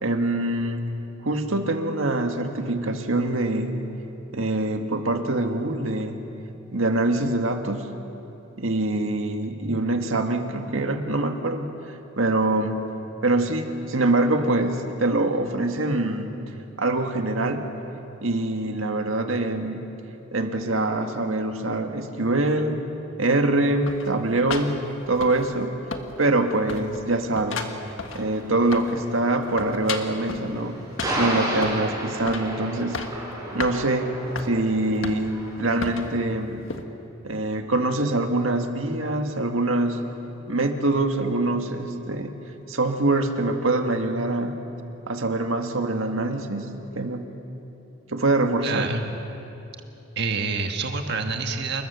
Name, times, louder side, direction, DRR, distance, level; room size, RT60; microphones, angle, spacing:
voice 1, 0.0-0.9 1.2-3.8 4.3-6.2 6.7-8.0 8.6-12.8 13.2-16.3 16.8-17.7 18.2-19.8 20.3-22.8 23.2-24.8 25.1-25.8 26.2-27.7 28.1-30.8 31.2-33.0 33.5-34.1 34.4-36.6 37.2-40.1 40.5-42.3 42.7-44.6 45.1-47.3 48.1-48.9, right 2 dB, 85° right, 5 dB, 1.9 m, -24 dB
sound 1, 23.9-25.7 25.9-26.4 26.7-29.1 29.3-30.5 31.0-31.9 32.3-32.5 32.8-33.2 33.6-33.8 34.3-34.5 35.0-35.4 35.8-36.1 36.7-36.8, left 4 dB, 75° left, 1.7 m, -34 dB
sound 2, 28.2-35.6, right 1 dB, 20° right, 6.0 m, -32 dB
voice 2, 48.6-49.1 50.1-51.9, right 4 dB, 55° right, 4 dB, 1.6 m, -27 dB
28.5 x 21.5 x 7.0 m, 2.9 s
head